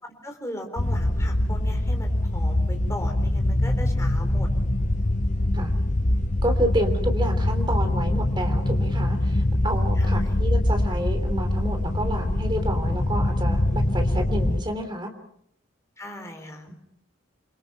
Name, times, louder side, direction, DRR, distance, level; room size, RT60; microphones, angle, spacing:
voice 1, 0.0-4.5 9.9-10.4 16.0-16.7, left 1 dB, 15° left, 4 dB, 4.1 m, -38 dB
sound 1, 0.8-14.6, left 1 dB, 40° left, 0.9 m, -23 dB
voice 2, 6.4-15.1 16.7-16.8, right 1 dB, 25° right, 6 dB, 3.4 m, -29 dB
28.5 x 24.5 x 5.9 m, 0.71 s
head